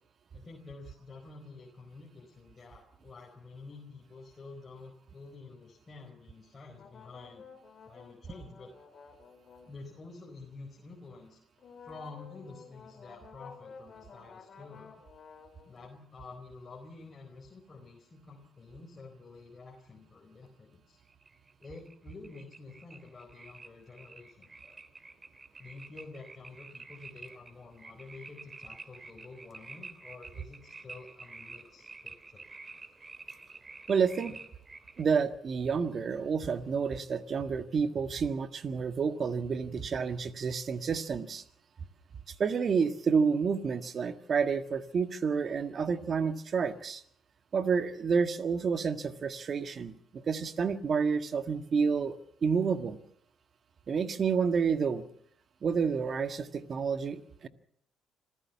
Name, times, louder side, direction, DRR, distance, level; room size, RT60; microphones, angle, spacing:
voice 1, 0.3-7.5 7.9-8.7 9.7-11.4 11.8-15.0 15.6-21.0 21.6-24.8 25.6-32.5, left 3 dB, 30° left, -1 dB, 4.4 m, -49 dB
sound 1, 6.8-10.2 11.6-15.8, left 5 dB, 45° left, 3.6 m, -52 dB
sound 2, 21.1-35.0, right 3 dB, 25° right, 2.8 m, -49 dB
voice 2, 33.9-34.3 35.0-41.4 42.4-47.0 47.5-53.0 53.9-55.0 55.6-57.5, right 5 dB, 45° right, 10 dB, 1.6 m, -29 dB
26.5 x 15.5 x 7.3 m, 0.68 s
cardioid pair, 100°, 0 cm